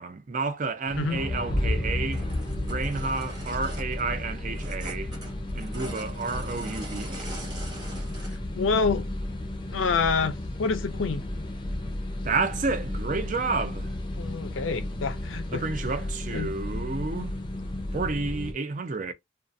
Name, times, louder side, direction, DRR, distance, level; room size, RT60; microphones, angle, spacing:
voice 1, 0.0-2.2 2.6-5.1 5.5-7.4 12.2-14.0 15.5-17.4 17.9-19.1, right 3 dB, 40° right, 0.4 m, -30 dB
sound 1, 0.9-18.5, left 1 dB, 25° left, 0.5 m, -33 dB
sound 2, 1.9-2.0 2.1-8.4 8.9-9.0, right 2 dB, 20° right, 0.9 m, -43 dB
voice 2, 8.2-9.1 9.7-11.3 14.2-15.7 16.3-16.5, left 4 dB, 90° left, 0.5 m, -27 dB
2.5 x 2.3 x 2.5 m
head